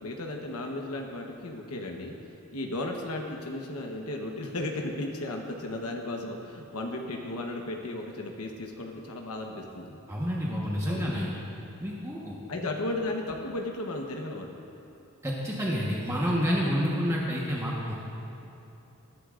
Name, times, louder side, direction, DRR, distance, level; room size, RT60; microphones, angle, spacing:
voice 1, 0.0-2.1 2.5-10.0 10.9-11.1 12.5-14.5, left 2 dB, 85° left, 1 dB, 1.1 m, -35 dB
voice 2, 10.1-11.3 11.8-12.4 15.2-17.9, equal, 15° right, -5 dB, 1.2 m, -29 dB
21.0 x 11.5 x 2.5 m, 2.8 s
head